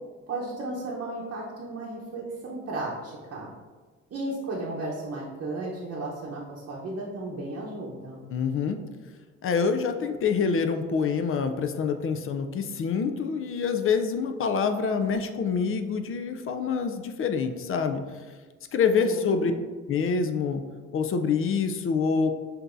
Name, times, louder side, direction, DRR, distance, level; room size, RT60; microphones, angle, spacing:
voice 1, 0.3-3.5 4.1-8.3 18.9-19.6, right 2 dB, 50° right, -4 dB, 0.8 m, -34 dB
voice 2, 8.3-8.8 9.4-18.0 18.7-19.5 19.9-20.6 20.9-22.3, left 5 dB, 45° left, 7 dB, 0.4 m, -26 dB
6.6 x 2.6 x 2.5 m, 1.4 s
cardioid pair, 90°, 30 cm